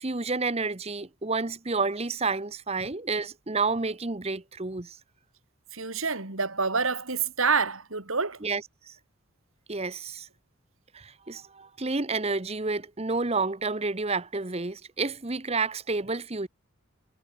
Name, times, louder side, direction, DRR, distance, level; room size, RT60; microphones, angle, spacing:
voice 1, 0.0-5.0 8.4-8.6 8.9-9.0 9.7-10.3 10.9-16.5, right 3 dB, 30° right, 1.0 m, -30 dB
voice 2, 5.7-8.4, right 5 dB, 75° right, 3.2 m, -27 dB
head